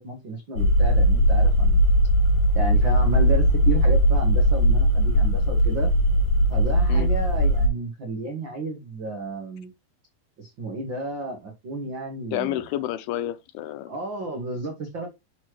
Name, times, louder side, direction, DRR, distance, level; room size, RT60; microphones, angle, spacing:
voice 1, 0.0-1.9 2.5-5.9 6.5-9.7 10.4-12.6 13.9-15.1, right 2 dB, 80° right, 1.0 m, -32 dB
sound 1, 0.6-7.7, equal, 60° left, 2.9 m, -19 dB
voice 2, 12.3-13.9, left 13 dB, 90° left, 2.5 m, -29 dB
6.5 x 6.2 x 3.1 m
omnidirectional pair, 4.4 m